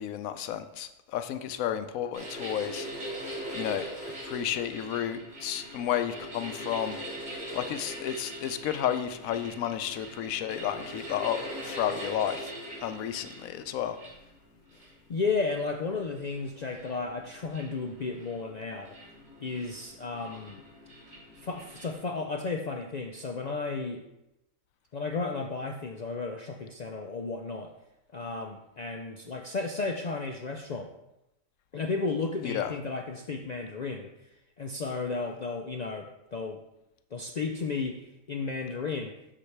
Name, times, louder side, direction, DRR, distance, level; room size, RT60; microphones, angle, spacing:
voice 1, 0.0-2.9 3.5-3.9 4.2-7.0 7.5-11.4 11.6-12.5 12.8-14.0 32.4-32.7, left 10 dB, 85° left, 10 dB, 1.0 m, -32 dB
sound 1, 2.1-22.0, equal, 55° right, 3.5 m, -42 dB
voice 2, 14.8-19.0 19.4-20.6 21.4-24.0 24.9-27.7 28.1-30.9 31.7-34.1 34.6-36.6 37.1-38.0 38.3-39.2, left 4 dB, 70° left, 2 dB, 0.4 m, -33 dB
7.4 x 6.8 x 3.3 m, 0.89 s
omnidirectional pair, 1.4 m